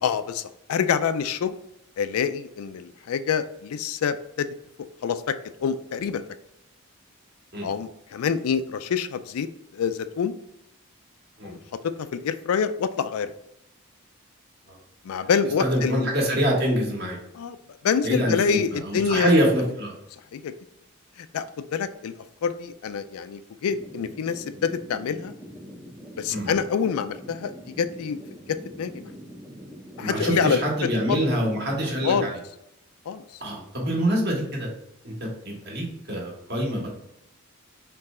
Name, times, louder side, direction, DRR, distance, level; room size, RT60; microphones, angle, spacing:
voice 1, 0.0-1.5 2.0-4.5 5.0-6.2 7.6-10.4 11.4-13.3 15.0-16.1 17.3-17.6 17.8-19.3 20.3-20.5 21.2-21.5 21.7-22.1 22.4-25.3 26.2-28.2 28.5-29.1 30.0-30.6 31.1-31.2 32.0-32.3 33.1-33.2, left 6 dB, 85° left, 12 dB, 0.4 m, -26 dB
voice 2, 15.6-17.2 18.0-19.9 26.3-26.5 30.0-32.4 33.4-34.7 35.0-36.9, equal, 50° right, -2 dB, 1.5 m, -25 dB
sound 1, 23.7-32.1, equal, 10° right, 0.5 m, -43 dB
4.6 x 3.2 x 3.6 m, 0.81 s
head